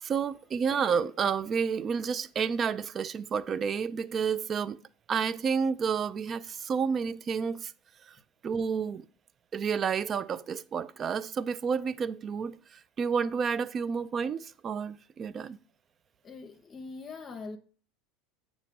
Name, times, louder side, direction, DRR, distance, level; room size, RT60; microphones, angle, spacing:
voice 1, 0.0-4.8 5.1-7.7 8.0-8.2 8.4-9.1 9.5-15.6, right 6 dB, 35° right, 0.4 m, -30 dB
voice 2, 16.2-17.6, left 4 dB, 35° left, 0.7 m, -42 dB
7.4 x 3.0 x 5.2 m
hypercardioid pair, 80°, 0 cm